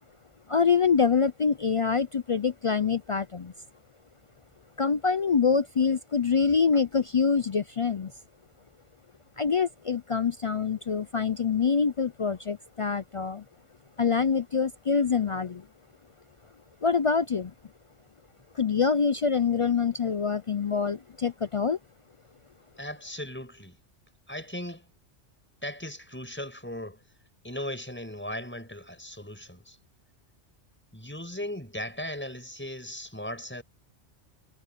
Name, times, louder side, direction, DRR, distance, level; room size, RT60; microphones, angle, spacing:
voice 1, 0.5-3.5 4.8-8.1 9.4-13.4 14.0-15.7 16.8-17.5 18.5-21.8, left 5 dB, 60° left, 0.3 m, -25 dB
voice 2, 22.8-23.8 24.3-24.9 25.6-27.0 27.4-29.8 30.9-33.6, left 1 dB, 10° left, 6.3 m, -37 dB
omnidirectional pair, 1.2 m